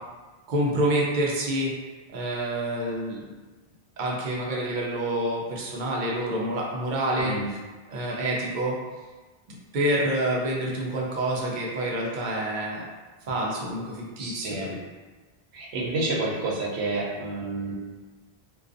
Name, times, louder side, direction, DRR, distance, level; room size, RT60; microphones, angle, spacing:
voice 1, 0.5-1.7 2.1-3.4 4.0-7.3 7.9-8.8 9.7-12.9 13.3-14.7, right 1 dB, 55° right, -3 dB, 0.6 m, -27 dB
voice 2, 7.2-7.5 14.2-14.8 15.5-17.7, right 2 dB, 90° right, -3 dB, 0.9 m, -29 dB
2.4 x 2.2 x 2.5 m, 1.3 s
omnidirectional pair, 1.0 m